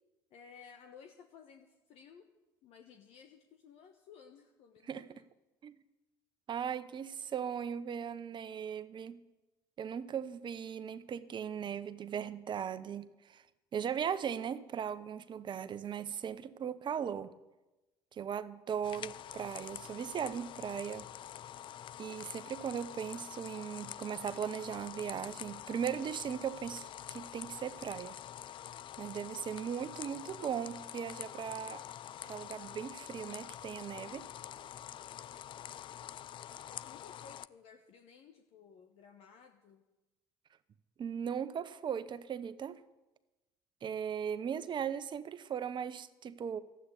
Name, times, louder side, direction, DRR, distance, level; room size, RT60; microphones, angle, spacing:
voice 1, 0.3-2.3 2.6-5.2 36.7-39.8, left 6 dB, 60° left, 1.2 m, -57 dB
voice 2, 6.5-9.2 9.8-13.4 13.7-17.3 18.1-21.1 22.0-28.2 29.0-31.8 32.2-34.3 41.0-42.8 43.8-46.6, right 8 dB, 45° right, 0.9 m, -38 dB
sound 1, 18.8-37.5, left 11 dB, 45° left, 0.4 m, -46 dB
13.0 x 8.4 x 9.9 m
hypercardioid pair, 65°, 11 cm